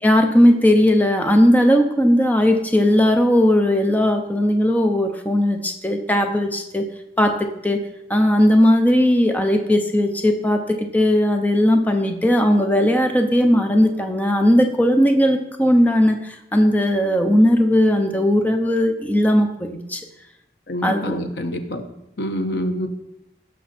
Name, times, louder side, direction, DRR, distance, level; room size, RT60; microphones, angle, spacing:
voice 1, 0.0-6.9 7.2-7.8 8.1-20.0 20.8-21.2, equal, 10° left, 5 dB, 0.7 m, -17 dB
voice 2, 20.7-21.8 22.2-22.9, equal, 75° left, 6 dB, 1.1 m, -26 dB
16.0 x 6.5 x 4.3 m, 0.86 s
head